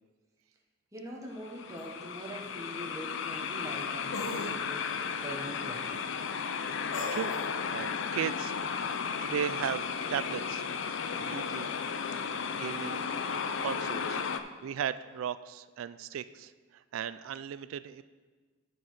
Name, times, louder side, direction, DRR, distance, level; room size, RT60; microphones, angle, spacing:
voice 1, 0.9-6.0, equal, 15° right, -2 dB, 1.2 m, -43 dB
sound 1, 1.4-14.4, left 6 dB, 65° left, 0.4 m, -34 dB
sound 2, 1.8-1.9 4.1-4.5 6.9-7.4, left 3 dB, 85° left, 1.0 m, -36 dB
voice 2, 7.7-8.6 9.2-10.6 11.1-11.7 12.3-14.2 14.6-18.0, right 8 dB, 80° right, 14 dB, 0.3 m, -36 dB
9.3 x 4.7 x 5.7 m, 1.4 s
head